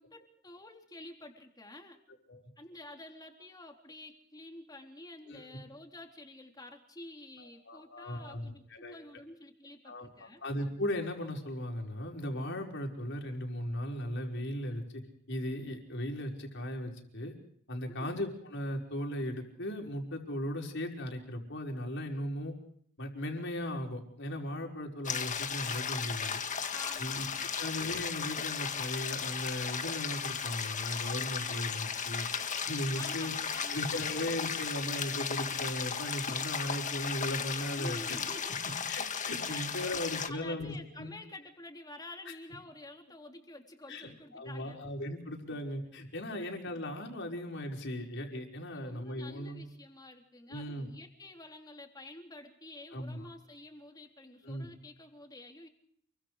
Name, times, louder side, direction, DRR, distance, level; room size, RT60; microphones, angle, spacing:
voice 1, 0.0-2.0 2.6-10.4 17.9-18.1 26.7-27.6 33.0-34.2 37.8-38.6 39.5-44.8 46.4-46.6 48.7-55.7, left 2 dB, 20° left, 3 dB, 3.7 m, -49 dB
voice 2, 7.7-8.9 9.9-15.0 15.3-17.3 17.7-22.5 23.0-26.4 27.0-27.3 27.6-32.3 32.6-33.3 33.7-38.0 38.9-41.1 43.9-49.6 50.5-50.9 52.9-53.2 54.4-54.7, left 1 dB, 60° left, 2 dB, 5.3 m, -37 dB
sound 1, 25.0-40.3, left 6 dB, 40° left, 1.8 m, -35 dB
29.0 x 23.5 x 5.1 m, 0.64 s
head